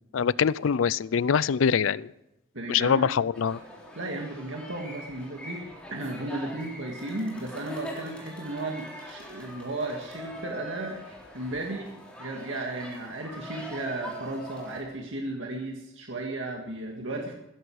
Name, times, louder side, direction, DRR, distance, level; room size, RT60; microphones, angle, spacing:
voice 1, 0.1-2.1 2.7-3.6, left 7 dB, 85° left, 21 dB, 0.4 m, -24 dB
voice 2, 2.5-3.1 4.0-5.6 5.9-11.9 12.2-17.3, right 2 dB, 75° right, 1 dB, 2.0 m, -34 dB
sound 1, 3.3-14.8, equal, 5° left, 3.6 m, -43 dB
16.0 x 15.0 x 4.8 m, 0.91 s
head